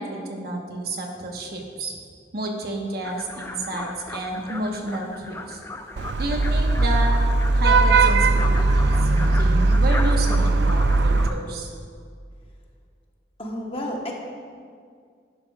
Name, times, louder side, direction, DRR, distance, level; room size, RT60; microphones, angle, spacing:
voice 1, 0.0-1.9 2.3-5.6 6.2-7.2 7.5-11.7, right 1 dB, 55° right, 1 dB, 1.2 m, -31 dB
sound 1, 3.0-11.4, left 2 dB, 15° left, 0.5 m, -37 dB
Vehicle horn car horn honking / Traffic noise roadway noise, 6.0-11.3, right 3 dB, 75° right, 0.4 m, -19 dB
voice 2, 13.4-14.1, left 1 dB, 30° left, -1 dB, 1.1 m, -30 dB
11.5 x 11.0 x 2.4 m, 2.1 s
head